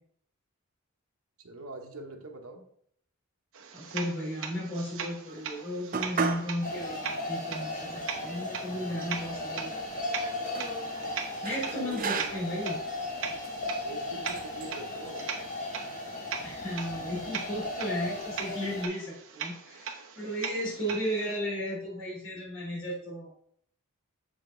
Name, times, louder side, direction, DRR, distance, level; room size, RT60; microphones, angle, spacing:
voice 1, 1.4-2.6 11.6-12.6 13.8-15.3 20.8-21.0, right 1 dB, 85° right, 3 dB, 1.1 m, -44 dB
sound 1, 3.5-21.4, right 7 dB, 65° right, 1.0 m, -41 dB
voice 2, 3.7-9.8 11.4-12.8 16.4-23.3, equal, 60° left, -4 dB, 3.4 m, -35 dB
sound 2, 5.9-6.5 6.9-7.0 7.8-7.9 8.2-9.2 10.1-10.7 11.4-12.6 13.3-13.6 14.3-14.7, right 5 dB, 40° right, 0.6 m, -35 dB
sound 3, 6.6-18.9, left 2 dB, 40° left, 1.3 m, -36 dB
7.5 x 5.2 x 3.8 m, 0.65 s
head